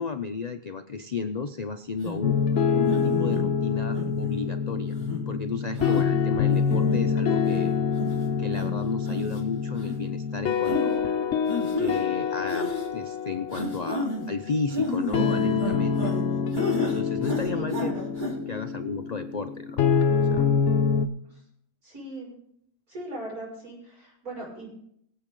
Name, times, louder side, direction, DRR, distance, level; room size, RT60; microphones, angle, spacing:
voice 1, 0.0-2.4 2.7-4.9 5.3-7.7 8.4-11.1 11.8-16.1 16.9-17.9 18.5-19.9 20.3-20.4, left 4 dB, 80° left, 8 dB, 0.3 m, -33 dB
sound 1, 2.0-2.2 2.9-3.4 3.9-4.4 5.0-5.2 5.8-6.0 6.5-7.0 7.5-7.6 8.0-8.2 8.5-8.6 9.0-9.4 9.8-9.9 10.6-10.8 11.5-12.0 12.5-12.9 13.5-14.2 14.7-16.2 16.5-17.0 17.2-17.9 18.2-18.3, left 1 dB, 30° right, 3.8 m, -31 dB
sound 2, 2.2-21.1, left 6 dB, 55° left, 1.1 m, -26 dB
voice 2, 17.5-18.0 21.3-21.4 21.8-22.4 22.9-24.8, right 1 dB, 75° right, -4 dB, 6.6 m, -39 dB
22.0 x 7.9 x 3.8 m, 0.72 s
omnidirectional pair, 1.6 m